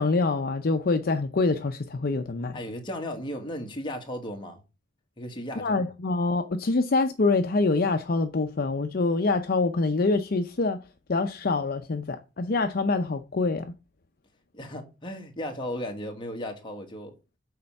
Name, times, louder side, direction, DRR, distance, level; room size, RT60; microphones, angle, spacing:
voice 1, 0.0-2.6 5.6-10.8 11.1-13.6, left 3 dB, 55° left, 0.6 m, -25 dB
voice 2, 2.5-4.6 5.2-5.9 14.5-17.1, left 1 dB, 25° left, 1.5 m, -35 dB
6.7 x 4.3 x 5.3 m
head